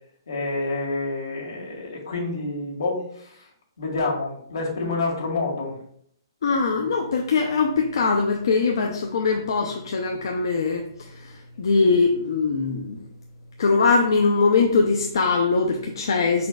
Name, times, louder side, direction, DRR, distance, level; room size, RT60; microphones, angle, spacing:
voice 1, 0.3-3.5 3.8-5.7, left 3 dB, 90° left, -2 dB, 1.7 m, -28 dB
voice 2, 6.4-10.8 11.6-13.0 13.6-16.5, left 4 dB, 70° left, 2 dB, 0.5 m, -21 dB
4.7 x 4.3 x 2.3 m, 0.65 s
hypercardioid pair, 160°, 2 cm